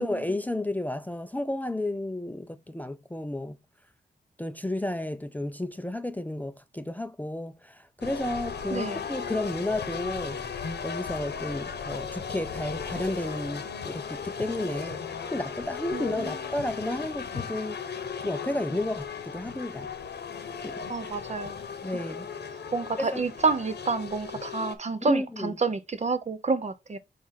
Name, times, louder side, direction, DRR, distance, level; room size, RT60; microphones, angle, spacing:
voice 1, 0.0-3.6 4.4-10.4 10.8-15.0 15.3-19.9 20.6-21.2 21.8-22.3 23.0-23.2 25.0-25.6, left 1 dB, 10° left, 0.5 m, -32 dB
sound 1, 8.0-24.8, left 6 dB, 80° left, 1.1 m, -36 dB
voice 2, 15.9-16.4 20.9-21.5 22.7-27.0, right 4 dB, 40° right, 0.7 m, -29 dB
6.9 x 2.5 x 5.6 m
cardioid pair, 80°, 17 cm